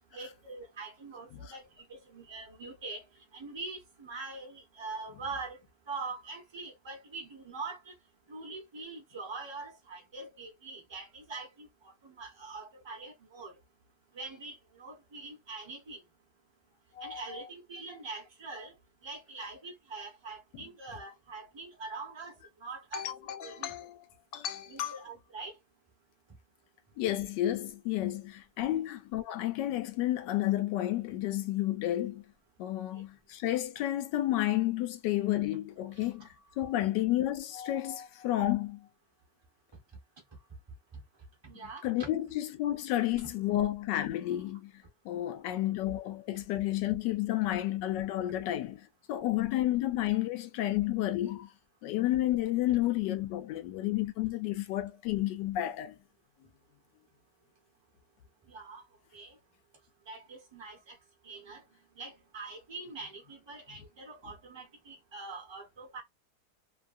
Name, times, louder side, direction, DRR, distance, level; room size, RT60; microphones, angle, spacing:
voice 1, 0.1-3.0 3.3-5.6 5.9-7.9 8.3-13.6 14.1-16.0 17.0-18.7 19.0-23.9 24.7-25.6 32.9-33.0 35.9-36.7 41.4-42.1 43.2-43.3 44.2-44.4 58.5-58.8 59.1-59.4 60.1-61.0 61.2-61.6 61.9-66.0, right 3 dB, 20° right, 0.8 m, -44 dB
voice 2, 17.0-17.4 22.9-24.0 24.3-25.0 27.0-32.2 32.6-36.3 36.6-38.9 41.8-44.7 45.0-51.5 51.8-56.0, left 14 dB, 80° left, 1.2 m, -31 dB
3.1 x 2.3 x 2.5 m
omnidirectional pair, 1.9 m